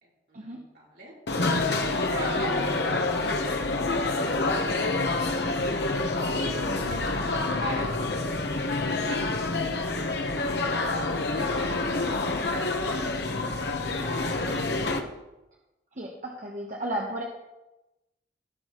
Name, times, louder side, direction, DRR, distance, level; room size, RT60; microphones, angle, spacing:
voice 1, 0.0-1.2 2.1-3.9 4.2-4.9 7.6-8.4 8.8-9.7 11.3-12.4, right 1 dB, 70° right, -5 dB, 3.6 m, -41 dB
sound 1, 1.3-15.0, left 2 dB, 70° left, 1.0 m, -27 dB
voice 2, 16.0-17.2, right 1 dB, 45° right, -1 dB, 1.0 m, -33 dB
17.5 x 6.3 x 3.0 m, 0.99 s
head